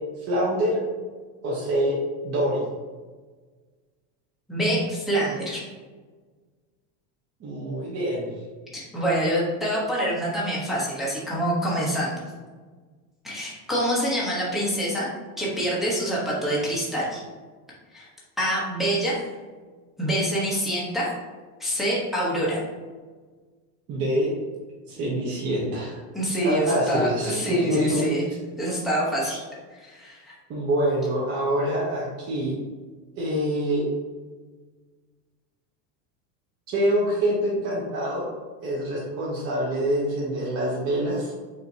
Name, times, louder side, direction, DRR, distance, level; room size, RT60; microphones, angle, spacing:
voice 1, 0.3-0.8 1.4-1.9 2.2-2.7 7.4-8.2 23.9-24.3 24.9-26.0 26.4-28.0 28.3-28.4 30.5-32.5 33.2-33.8 36.7-38.3 38.6-41.3, equal, 30° right, -6 dB, 0.9 m, -25 dB
voice 2, 4.5-5.6 8.7-12.2 13.2-15.1 15.4-17.2 17.9-18.1 18.4-19.2 20.0-21.1 21.6-22.6 26.1-28.2 28.6-29.4 29.8-30.3, right 1 dB, ahead, -6 dB, 0.9 m, -26 dB
5.6 x 2.9 x 2.7 m, 1.4 s
supercardioid pair, 145°, 50 cm